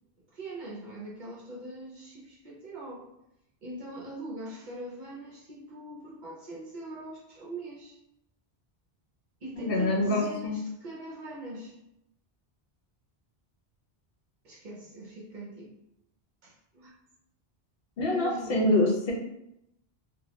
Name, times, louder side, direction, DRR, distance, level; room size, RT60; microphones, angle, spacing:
voice 1, 0.3-3.1 3.6-8.0 9.4-11.8 14.4-15.7 16.4-16.9 18.1-18.7, right 1 dB, 55° right, -3 dB, 0.6 m, -42 dB
voice 2, 9.6-10.6 18.0-19.1, left 1 dB, 70° left, -1 dB, 0.7 m, -25 dB
2.2 x 2.0 x 2.8 m, 0.82 s
omnidirectional pair, 1.0 m